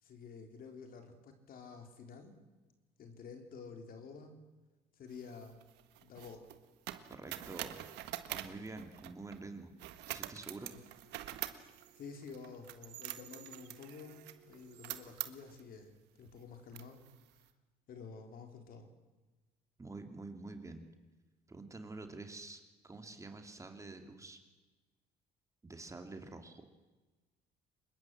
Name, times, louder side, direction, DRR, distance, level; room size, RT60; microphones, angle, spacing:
voice 1, 0.0-2.4 3.0-4.4 5.0-5.6 6.0-6.5 12.0-17.1 17.9-18.9, left 5 dB, 60° left, 5 dB, 4.0 m, -50 dB
sound 1, 5.1-9.4 9.8-15.6 16.2-16.4 16.7-17.4, right 14 dB, 85° right, 1.6 m, -46 dB
voice 2, 7.1-7.8 8.3-9.7 10.1-10.7 19.8-20.8 21.5-24.4 25.6-26.6, right 3 dB, 20° right, 6 dB, 2.8 m, -47 dB
25.0 x 21.5 x 7.8 m, 1.2 s
cardioid pair, 110°, 17 cm